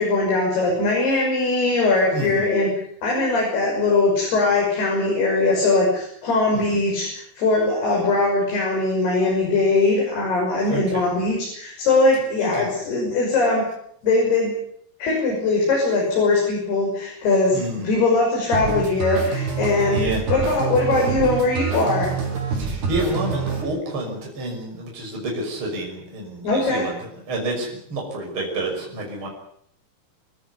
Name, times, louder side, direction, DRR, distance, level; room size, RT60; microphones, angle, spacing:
voice 1, 0.0-2.7 3.0-13.7 14.0-14.5 15.0-22.1 26.4-26.9, left 3 dB, 75° left, -1 dB, 8.3 m, -21 dB
voice 2, 2.1-2.5 6.5-6.6 10.7-11.1 12.4-12.7 17.5-17.8 19.9-20.2 22.5-26.9 27.3-29.3, right 1 dB, 30° right, -1 dB, 6.6 m, -29 dB
sound 1, 18.5-23.6, right 5 dB, 80° right, 7.4 m, -26 dB
28.5 x 14.5 x 9.6 m, 0.69 s
omnidirectional pair, 4.6 m